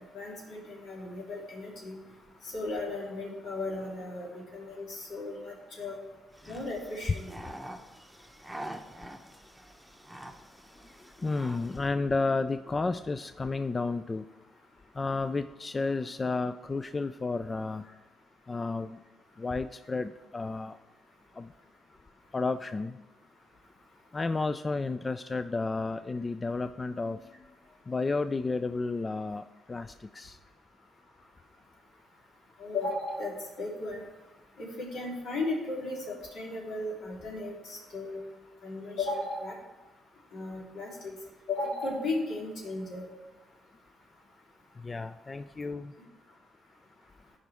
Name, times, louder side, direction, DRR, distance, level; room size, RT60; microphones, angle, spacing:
voice 1, 0.1-1.9 2.5-5.9 6.5-7.3 32.6-33.3 33.6-34.0 34.6-38.2 38.6-39.5 40.3-41.1 41.5-43.0, left 2 dB, 80° left, -4 dB, 3.3 m, -35 dB
sound 1, 6.3-11.9, right 1 dB, 5° right, 0.9 m, -46 dB
voice 2, 11.2-14.2 15.0-17.8 18.5-19.0 19.4-20.8 21.4-21.5 22.3-22.9 24.1-27.2 27.9-29.4 29.7-30.4 44.8-45.9, left 3 dB, 25° left, 10 dB, 0.3 m, -32 dB
14.5 x 5.1 x 3.5 m, 1.1 s
cardioid pair, 90°, 0 cm